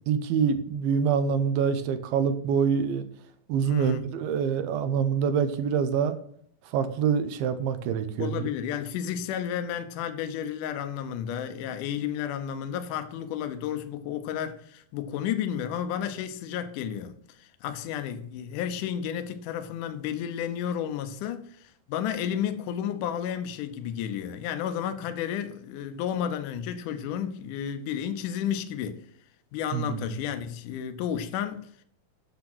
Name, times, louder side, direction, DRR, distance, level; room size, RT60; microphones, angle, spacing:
voice 1, 0.1-3.0 3.5-6.2 6.7-8.5 29.7-30.1, right 7 dB, 85° right, 2.8 m, -26 dB
voice 2, 3.6-4.0 8.2-29.0 29.5-31.8, left 9 dB, 70° left, 2.2 m, -32 dB
8.8 x 7.1 x 6.1 m
omnidirectional pair, 4.2 m